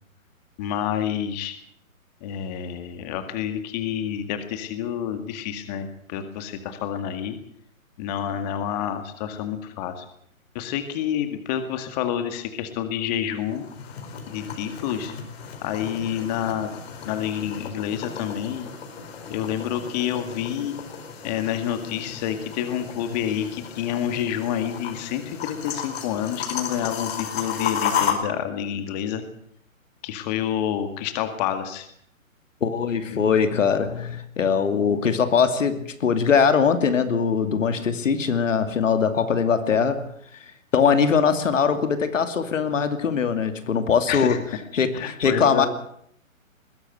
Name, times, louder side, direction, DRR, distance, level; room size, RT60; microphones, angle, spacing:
voice 1, 0.6-1.6 2.2-7.4 8.0-10.1 10.5-13.6 14.3-15.1 15.6-18.7 19.3-20.8 21.2-29.2 30.0-31.9 33.1-33.2 44.1-44.4 44.9-45.7, left 10 dB, 30° left, 8 dB, 2.1 m, -28 dB
sound 1, 13.3-28.1, left 7 dB, 50° left, 4.7 m, -33 dB
voice 2, 32.6-40.1 40.7-44.4 44.7-45.7, left 6 dB, 65° left, 8 dB, 2.7 m, -21 dB
21.0 x 16.0 x 8.1 m, 0.69 s
hypercardioid pair, 140°, 41 cm